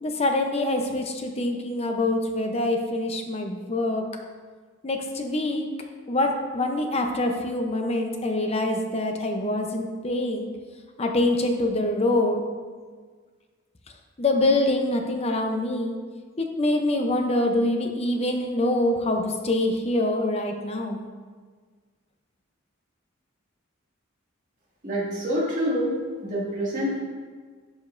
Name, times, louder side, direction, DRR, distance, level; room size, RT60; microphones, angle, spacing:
voice 1, 0.0-4.0 4.8-5.7 6.1-10.5 11.0-12.4 14.2-15.9 16.4-21.1, left 1 dB, 30° left, 4 dB, 0.6 m, -25 dB
voice 2, 24.8-26.0 26.2-27.0, equal, 40° right, -6 dB, 2.1 m, -26 dB
11.5 x 5.1 x 2.6 m, 1.5 s
head